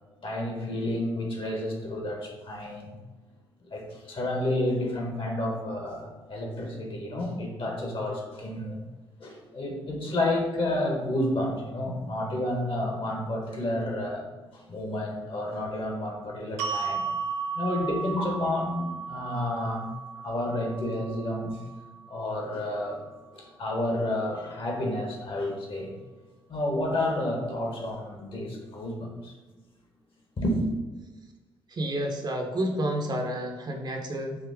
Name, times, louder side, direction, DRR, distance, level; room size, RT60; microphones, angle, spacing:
voice 1, 0.2-2.9 3.7-8.8 9.2-14.3 14.5-17.0 17.5-21.6 22.1-23.0 23.3-25.9 26.5-29.3 30.4-30.6, left 1 dB, 45° left, 1 dB, 1.2 m, -30 dB
sound 1, 16.6-22.8, right 5 dB, 75° right, 0.5 m, -35 dB
voice 2, 31.7-34.4, right 1 dB, 35° right, 3 dB, 0.8 m, -30 dB
4.9 x 2.9 x 3.5 m, 1.3 s
figure-of-eight pair, 45°, 13 cm